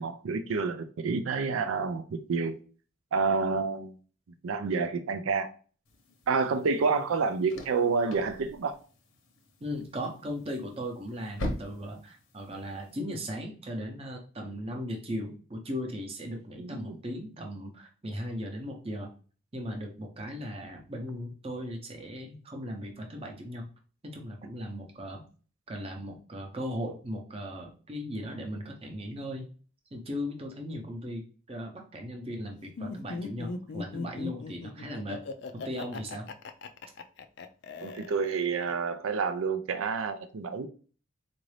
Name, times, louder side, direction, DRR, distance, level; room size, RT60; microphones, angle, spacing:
voice 1, 0.0-2.0 2.3-2.5 3.1-3.9 4.4-5.5 6.3-8.7 16.6-17.0 37.8-40.7, right 4 dB, 90° right, 0.4 m, -28 dB
sound 1, 5.8-13.0, left 1 dB, 85° left, 0.9 m, -43 dB
voice 2, 9.6-19.1 19.5-23.7 24.0-25.3 25.7-29.5 29.9-35.2 35.5-36.3, equal, 30° right, 0.7 m, -37 dB
Laughter, 32.8-38.7, left 4 dB, 55° left, 0.3 m, -39 dB
4.0 x 2.5 x 3.2 m
head